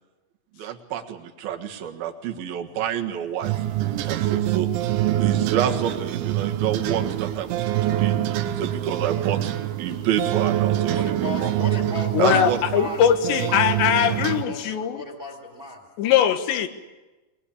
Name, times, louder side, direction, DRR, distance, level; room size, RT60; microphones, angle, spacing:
voice 1, 0.6-3.5 4.1-4.7 5.2-9.5 9.8-11.5 12.2-12.6, right 9 dB, 60° right, 4 dB, 3.1 m, -28 dB
sound 1, 3.4-14.4, right 13 dB, 80° right, 3.4 m, -25 dB
voice 2, 10.7-15.8, left 2 dB, 15° right, 4 dB, 2.5 m, -37 dB
voice 3, 12.1-15.0 16.0-16.7, left 9 dB, 70° left, 9 dB, 3.5 m, -21 dB
22.5 x 22.0 x 8.6 m, 1.1 s
omnidirectional pair, 5.5 m